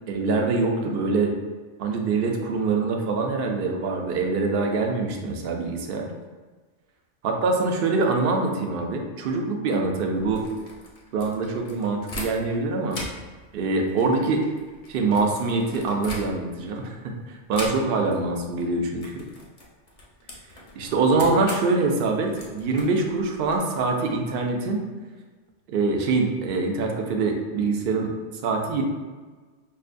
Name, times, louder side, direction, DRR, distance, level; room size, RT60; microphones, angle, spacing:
voice 1, 0.1-1.4 1.8-6.1 7.2-10.5 11.1-13.0 13.5-14.5 14.9-19.3 20.8-24.8 25.7-28.1 28.4-28.8, right 3 dB, 60° right, 2 dB, 0.7 m, -24 dB
sound 1, 10.2-12.6 12.9-16.7 17.5-18.2 18.4-18.7 19.0-23.6, left 1 dB, 45° left, 0.7 m, -40 dB
5.4 x 2.2 x 2.5 m, 1.4 s
omnidirectional pair, 1.2 m